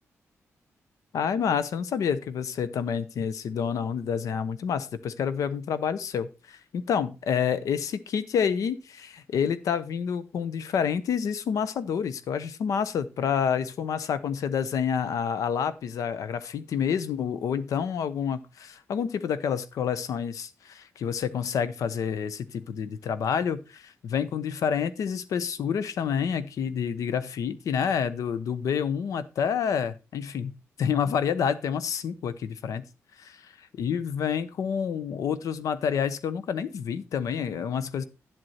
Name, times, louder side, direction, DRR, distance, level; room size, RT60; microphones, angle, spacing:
voice 1, 1.1-32.8 33.2-38.0, left 7 dB, 85° left, 14 dB, 0.9 m, -28 dB
10.5 x 7.9 x 4.2 m, 0.30 s
cardioid pair, 80°, 6 cm